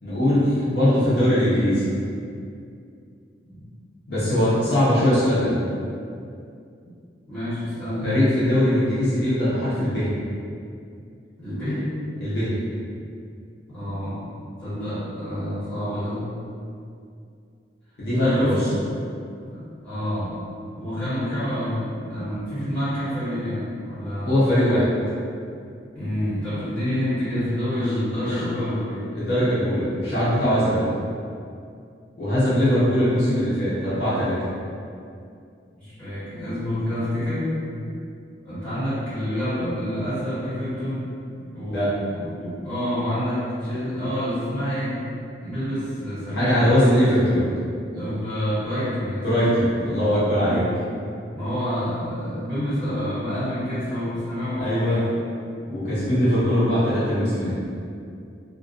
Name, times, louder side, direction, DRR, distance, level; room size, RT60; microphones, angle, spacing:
voice 1, 0.0-1.9 4.1-5.6 8.0-10.1 12.2-12.6 18.0-18.6 24.2-24.9 28.2-28.4 29.1-30.8 32.2-34.4 41.7-41.9 46.3-47.4 49.2-50.6 54.6-55.0 55.7-57.5, equal, 70° left, -11 dB, 0.8 m, -21 dB
voice 2, 7.3-8.2 11.4-11.9 13.7-16.3 18.2-18.7 19.5-20.5 20.8-24.4 25.9-29.1 32.7-33.0 35.8-37.6 38.4-41.1 41.5-45.0 45.4-46.9 47.9-49.3 50.4-50.6 51.3-55.2, equal, 10° left, -16 dB, 1.2 m, -28 dB
2.5 x 2.1 x 2.4 m, 2.4 s
head